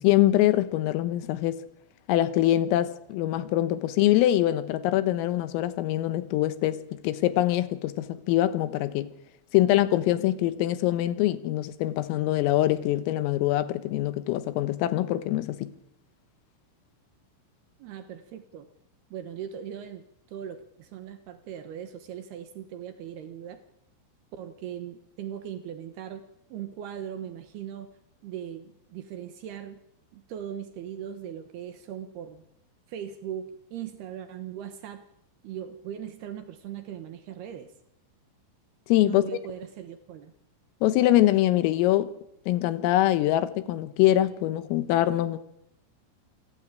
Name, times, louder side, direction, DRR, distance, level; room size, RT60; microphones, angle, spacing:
voice 1, 0.0-1.6 2.1-9.1 9.5-15.7 38.9-39.2 40.8-42.1 42.5-45.4, left 14 dB, 80° left, 3.8 m, -24 dB
voice 2, 17.8-18.7 19.1-23.6 24.3-26.2 26.5-27.9 28.2-29.8 30.1-32.4 32.9-35.0 35.4-37.7 39.0-40.3, right 9 dB, 70° right, 2.6 m, -39 dB
28.0 x 15.5 x 9.0 m
omnidirectional pair, 5.9 m